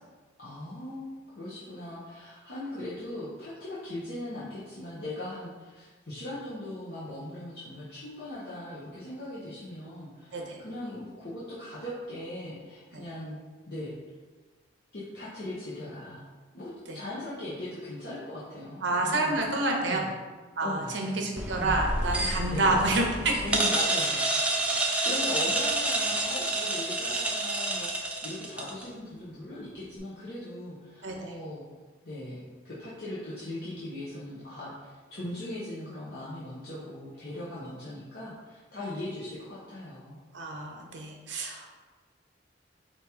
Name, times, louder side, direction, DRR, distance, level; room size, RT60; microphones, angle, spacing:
voice 1, 0.4-1.1 1.3-13.4 13.7-14.0 14.9-16.3 16.5-19.4 19.8-20.1 20.6-21.9 22.5-22.8 23.4-24.4 24.7-31.6 32.0-40.2, left 1 dB, 55° left, -9 dB, 0.8 m, -39 dB
voice 2, 18.8-20.0 20.6-23.4 31.0-31.3 40.3-41.7, right 2 dB, 75° right, 1 dB, 0.7 m, -28 dB
sound 1, 21.4-28.8, right 2 dB, 5° right, 0.3 m, -29 dB
4.4 x 2.9 x 3.5 m, 1.4 s
head